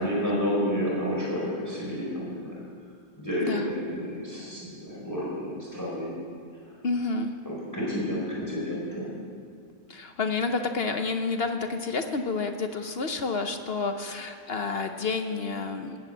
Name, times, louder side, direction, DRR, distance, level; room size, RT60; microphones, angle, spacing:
voice 1, 0.0-2.6 3.2-6.1 7.4-9.1, equal, 10° left, -6 dB, 4.6 m, -30 dB
voice 2, 6.8-7.4 9.9-16.0, left 4 dB, 50° left, 6 dB, 0.8 m, -29 dB
19.0 x 9.0 x 7.9 m, 2.2 s
omnidirectional pair, 1.9 m